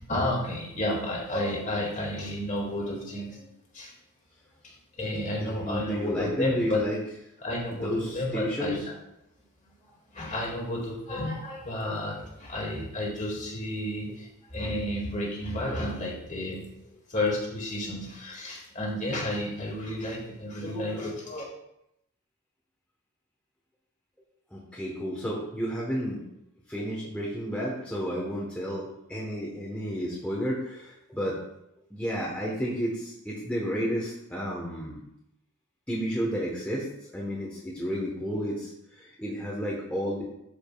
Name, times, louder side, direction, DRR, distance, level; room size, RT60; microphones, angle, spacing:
voice 1, 0.1-3.5 3.7-3.9 5.0-6.8 7.4-8.8 9.8-16.7 17.1-21.4, left 1 dB, 35° left, -2 dB, 1.9 m, -31 dB
voice 2, 5.4-7.0 7.7-8.9 14.1-14.2 24.5-26.2 26.7-31.4 31.9-35.0 35.9-40.2, equal, 5° left, -5 dB, 1.0 m, -32 dB
12.0 x 5.0 x 2.3 m, 0.80 s
head